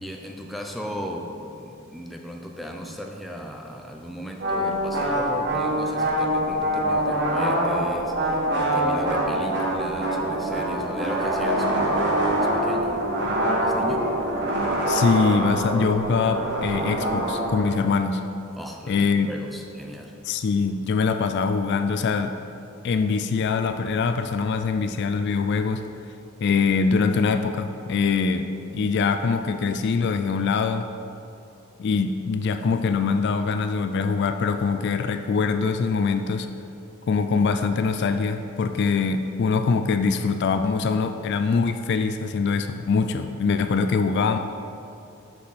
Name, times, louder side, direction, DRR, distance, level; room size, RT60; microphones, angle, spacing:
voice 1, 0.0-14.1 18.5-20.1, equal, ahead, 1 dB, 0.5 m, -37 dB
sound 1, 4.4-17.7, right 1 dB, 55° right, 1.2 m, -24 dB
voice 2, 14.9-18.2 18.9-19.3 20.2-22.4 22.8-25.8 26.4-30.9 31.8-36.5 37.1-44.4, left 5 dB, 55° left, 8 dB, 0.3 m, -23 dB
6.2 x 6.0 x 5.8 m, 2.6 s
head